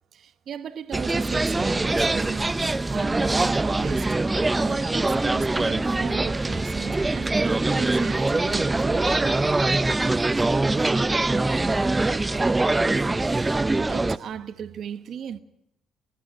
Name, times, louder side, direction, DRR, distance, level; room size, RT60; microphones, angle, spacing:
voice 1, 0.1-4.1 4.6-9.4 13.9-15.4, right 8 dB, 65° right, 1.1 m, -37 dB
sound 1, 0.9-14.2, right 2 dB, 20° right, 0.7 m, -23 dB
voice 2, 10.5-13.4, left 4 dB, 70° left, 7.5 m, -53 dB
25.5 x 12.0 x 9.0 m
supercardioid pair, 65°, 0 cm